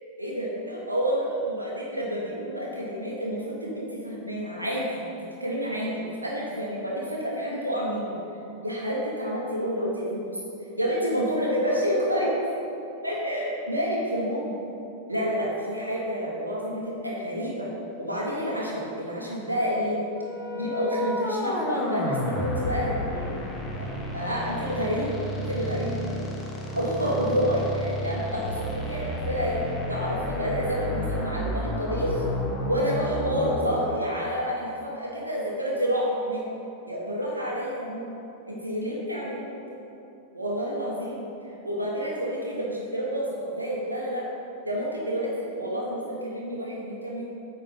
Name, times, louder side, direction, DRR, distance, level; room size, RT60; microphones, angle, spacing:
voice 1, 0.2-4.9 5.4-8.2 8.6-10.4 10.8-12.3 13.0-14.5 15.1-17.7 18.0-20.1 20.5-23.3 23.7-26.1 26.7-32.2 32.6-36.4 36.8-38.1 38.5-39.4 40.3-41.3 41.6-44.2 44.6-47.2, equal, 85° right, -4 dB, 1.4 m, -29 dB
sound 1, 20.2-34.0, left 1 dB, 20° left, 1.2 m, -31 dB
8.6 x 4.2 x 5.3 m, 2.8 s
figure-of-eight pair, 90°, 0 cm